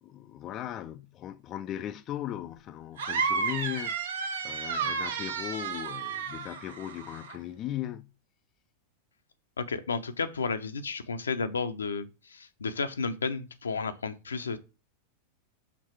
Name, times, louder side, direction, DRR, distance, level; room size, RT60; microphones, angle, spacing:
voice 1, 0.0-8.1, left 12 dB, 35° left, 0.4 m, -38 dB
sound 1, 3.0-7.4, right 5 dB, 65° right, 1.0 m, -32 dB
voice 2, 9.6-14.6, left 4 dB, 70° left, 0.6 m, -32 dB
6.0 x 4.2 x 4.6 m
figure-of-eight pair, 90°, 0 cm